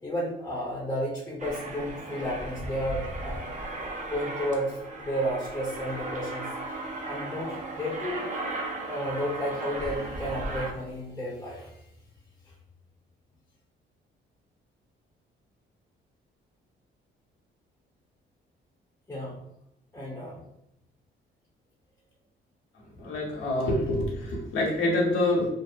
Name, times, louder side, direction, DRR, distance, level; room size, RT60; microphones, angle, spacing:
voice 1, 0.0-3.4 4.1-6.8 7.1-8.2 8.9-11.7 19.1-19.4 19.9-20.4, equal, 10° left, -4 dB, 0.6 m, -32 dB
Aircraft, 1.4-10.7, right 2 dB, 40° right, 0.5 m, -36 dB
voice 2, 23.0-25.5, left 1 dB, 85° left, -3 dB, 0.8 m, -26 dB
2.6 x 2.0 x 2.4 m, 0.85 s
cardioid pair, 90°, 20 cm